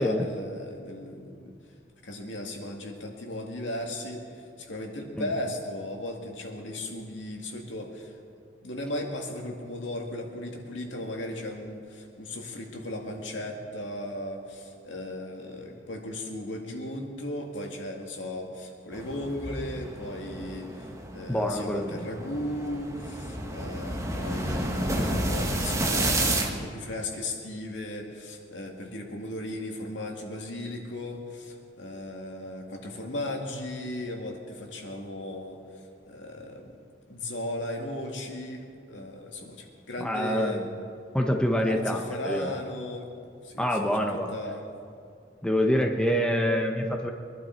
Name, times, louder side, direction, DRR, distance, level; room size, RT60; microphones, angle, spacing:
voice 1, 0.0-1.6 2.0-8.2 8.6-20.9 21.1-36.7 37.1-40.6 41.6-43.1 43.4-44.6, left 1 dB, 80° left, 1 dB, 2.2 m, -36 dB
sound 1, 18.9-26.5, right 1 dB, 15° right, 1.4 m, -31 dB
voice 2, 21.3-22.0 24.9-25.1 40.0-40.7 41.1-42.0 42.2-42.5 43.6-44.3 45.4-47.1, equal, 5° left, 2 dB, 1.0 m, -26 dB
23.5 x 11.5 x 4.5 m, 2.4 s
head